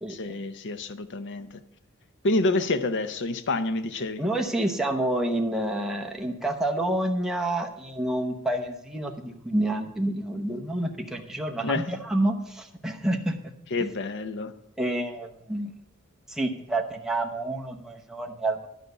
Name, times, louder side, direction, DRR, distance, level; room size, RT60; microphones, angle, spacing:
voice 1, 0.1-1.5 2.2-4.2 11.6-11.8 13.7-14.5, left 2 dB, 55° left, 12 dB, 0.7 m, -28 dB
voice 2, 4.2-13.5 13.8-13.9 14.8-15.7 16.3-18.7, right 1 dB, ahead, 1 dB, 0.9 m, -28 dB
12.0 x 5.2 x 8.1 m, 0.80 s
head